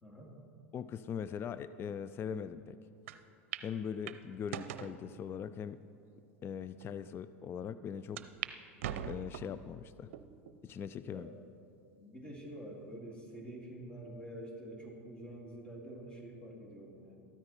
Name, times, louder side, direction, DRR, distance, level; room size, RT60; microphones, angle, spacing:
voice 1, 0.0-0.4 11.1-11.3 12.0-17.3, right 1 dB, 15° left, -1 dB, 2.6 m, -47 dB
voice 2, 0.7-2.8 3.6-5.8 6.4-8.3 9.1-10.1 10.6-11.3, left 7 dB, 30° left, 14 dB, 0.4 m, -41 dB
sound 1, 3.1-3.2 3.5-3.7 4.1-4.9 5.6-5.7 6.4-6.5 6.8-6.9 8.2-8.5 8.8-9.6 10.1-10.6 11.1-11.2 12.3-12.8, right 10 dB, 70° right, 0.6 m, -41 dB
13.5 x 13.5 x 4.3 m, 2.5 s
hypercardioid pair, 90°, 7 cm